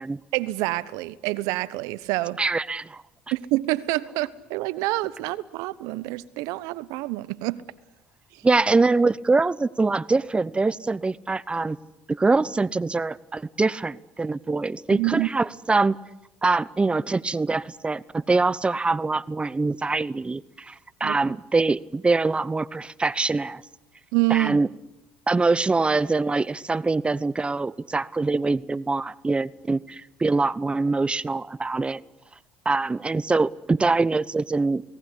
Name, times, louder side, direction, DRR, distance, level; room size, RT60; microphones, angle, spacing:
voice 1, 0.3-2.4 3.3-7.6 14.9-15.3 21.0-21.2 24.1-24.6, right 19 dB, 75° right, 1.1 m, -27 dB
voice 2, 2.4-3.0 8.4-11.8 12.1-16.0 16.4-20.7 21.0-23.6 24.3-24.7 25.3-32.0 32.6-34.8, right 3 dB, 20° right, 0.9 m, -24 dB
29.5 x 18.5 x 10.0 m
hypercardioid pair, 75°, 6 cm